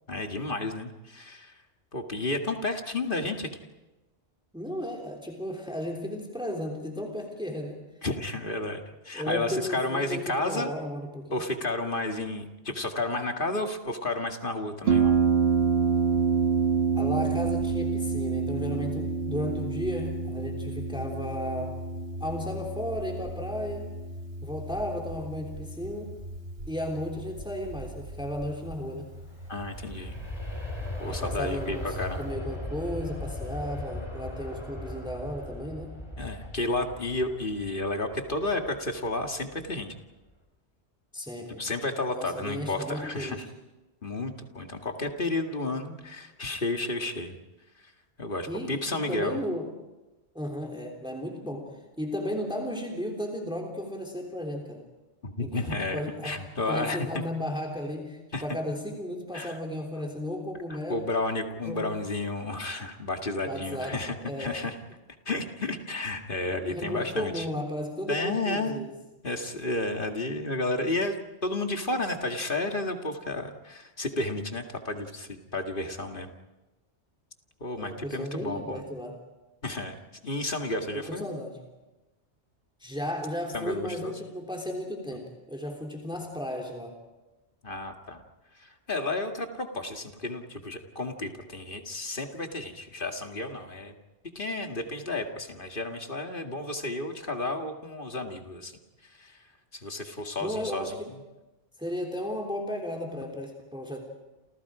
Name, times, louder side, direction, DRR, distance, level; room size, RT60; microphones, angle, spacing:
voice 1, 0.1-1.6 1.9-3.5 8.0-10.7 11.3-15.1 29.5-30.1 31.0-32.2 36.2-39.9 41.6-43.5 44.0-47.4 48.2-49.4 55.2-57.1 58.3-58.4 59.3-59.5 60.9-64.7 65.3-67.5 68.1-68.8 69.2-76.3 77.6-78.8 79.6-81.3 83.5-84.1 87.6-88.2 88.6-93.9 94.4-99.4 99.7-100.9, left 2 dB, 50° left, 4 dB, 2.4 m, -32 dB
voice 2, 4.5-7.8 9.1-11.5 17.0-21.8 22.2-24.0 24.4-26.2 26.7-29.1 31.1-36.0 41.1-41.7 42.1-43.5 48.5-49.7 50.3-54.9 55.4-61.1 61.6-62.0 63.5-64.6 66.6-68.9 77.8-79.1 80.9-81.6 82.8-87.0 100.4-101.1 101.8-104.0, equal, 5° right, 1 dB, 3.3 m, -34 dB
Harp, 14.9-32.3, right 5 dB, 65° right, 1.5 m, -29 dB
Aircraft, 29.0-39.8 40.3-40.4, left 1 dB, 25° left, 5.0 m, -38 dB
29.5 x 28.5 x 5.0 m, 1.1 s
omnidirectional pair, 1.1 m